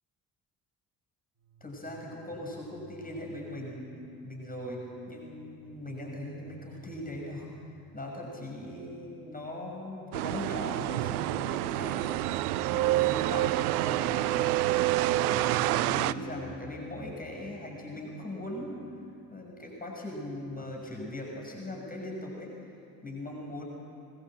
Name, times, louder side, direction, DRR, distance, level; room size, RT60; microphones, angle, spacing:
sound 1, 1.4-20.5, equal, 40° right, 3.5 m, -55 dB
voice 1, 1.6-3.9 4.2-12.2 12.7-14.6 15.3-18.8 19.3-22.5 23.0-23.6, left 1 dB, 20° left, 0 dB, 6.4 m, -39 dB
sound 2, 10.1-16.1, right 16 dB, 70° right, 0.6 m, -27 dB
23.0 x 21.0 x 8.0 m, 2.5 s
figure-of-eight pair, 45°, 46 cm